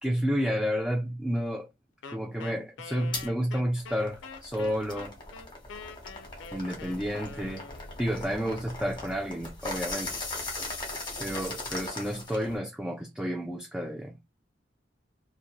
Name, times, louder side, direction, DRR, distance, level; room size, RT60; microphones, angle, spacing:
voice 1, 0.0-1.7 2.1-5.1 6.5-7.6 8.0-10.1 11.2-14.2, equal, 5° right, 0.3 m, -31 dB
Wind instrument woodwind instrument, 2.0-8.1, left 4 dB, 90° left, 0.4 m, -45 dB
sound 1, 3.1-3.3 3.8-12.6, left 2 dB, 25° left, 0.9 m, -39 dB
2.6 x 2.2 x 2.3 m
head